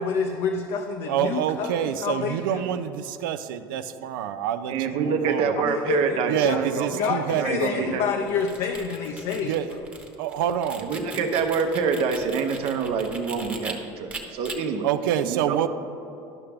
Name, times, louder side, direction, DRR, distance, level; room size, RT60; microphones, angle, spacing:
voice 1, 0.0-2.6 5.6-6.2 6.4-6.6 7.0-9.5, left 6 dB, 60° left, 3 dB, 0.6 m, -28 dB
voice 2, 1.1-5.6 6.3-8.0 9.4-9.8 10.2-10.9 14.8-15.7, right 10 dB, 90° right, 11 dB, 0.4 m, -27 dB
voice 3, 4.7-7.1 7.4-8.0 10.8-14.9 15.2-15.6, right 5 dB, 60° right, 6 dB, 0.8 m, -26 dB
sound 1, 8.2-13.7 14.1-14.6, right 3 dB, 15° right, 1.0 m, -39 dB
11.5 x 5.8 x 3.4 m, 2.9 s
supercardioid pair, 100°, 11 cm